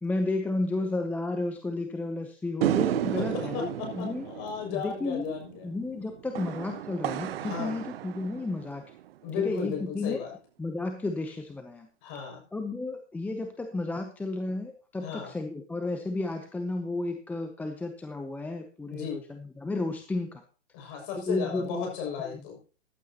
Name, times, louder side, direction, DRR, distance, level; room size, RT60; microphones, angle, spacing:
voice 1, 0.0-4.2 4.7-5.4 5.6-8.9 9.4-10.2 10.6-11.9 12.5-20.4 21.2-21.9 22.2-22.4, left 2 dB, 5° left, 6 dB, 0.8 m, -32 dB
sound 1, 2.6-9.1, right 13 dB, 55° right, 0.6 m, -33 dB
voice 2, 3.2-5.7 7.4-7.8 9.2-10.3 12.0-12.4 15.0-15.3 18.9-19.2 20.7-22.6, left 7 dB, 35° left, 1 dB, 6.2 m, -35 dB
15.0 x 11.5 x 2.9 m, 0.37 s
hypercardioid pair, 135°, 36 cm